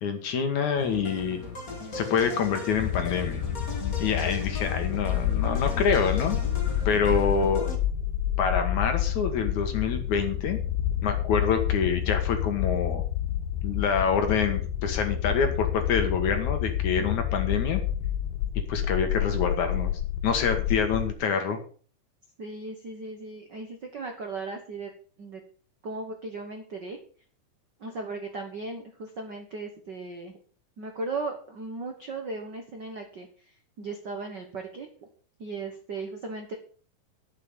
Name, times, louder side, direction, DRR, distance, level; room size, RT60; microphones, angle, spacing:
voice 1, 0.0-1.4 1.9-3.4 4.0-6.4 6.9-7.7 8.4-10.6 11.0-13.0 13.6-17.8 18.7-19.9 20.2-21.6, left 6 dB, 60° left, 6 dB, 2.5 m, -26 dB
sound 1, 0.8-7.8, left 3 dB, 30° left, 1.9 m, -38 dB
sound 2, 2.8-21.1, left 11 dB, 85° left, 2.8 m, -29 dB
voice 2, 22.4-24.9 25.2-25.4 25.8-27.0 27.8-30.4 30.8-33.3 33.8-34.9 35.4-36.5, right 3 dB, 85° right, 3 dB, 0.9 m, -37 dB
11.0 x 7.6 x 6.9 m, 0.42 s
omnidirectional pair, 4.5 m